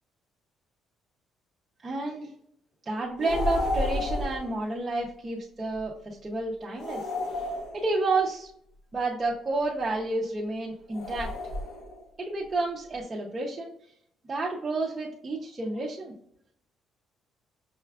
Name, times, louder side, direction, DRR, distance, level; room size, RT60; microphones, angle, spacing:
voice 1, 1.8-2.3 2.9-7.0 7.7-8.5 8.9-11.3 12.2-13.7 14.3-16.1, right 2 dB, 20° right, -4 dB, 0.5 m, -30 dB
sound 1, 3.2-4.5 6.8-8.2 10.9-12.0, left 1 dB, 65° left, 0.8 m, -31 dB
5.5 x 2.2 x 2.2 m, 0.69 s
cardioid pair, 160°, 0 cm